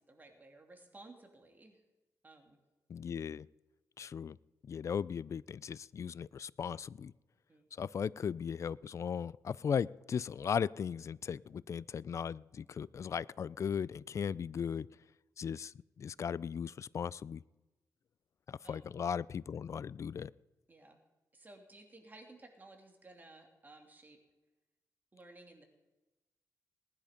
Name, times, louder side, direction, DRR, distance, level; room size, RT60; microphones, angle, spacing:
voice 1, 0.0-1.8 2.2-2.6 7.5-7.7 18.6-18.8 20.7-21.0 21.3-24.2 25.1-25.7, right 2 dB, 30° right, 3 dB, 2.9 m, -56 dB
voice 2, 2.9-3.5 4.0-4.4 4.6-7.1 7.7-14.9 15.4-17.4 18.5-20.3, left 7 dB, 50° left, 22 dB, 0.4 m, -37 dB
19.0 x 10.5 x 5.2 m, 1.1 s
cardioid pair, 80°, 7 cm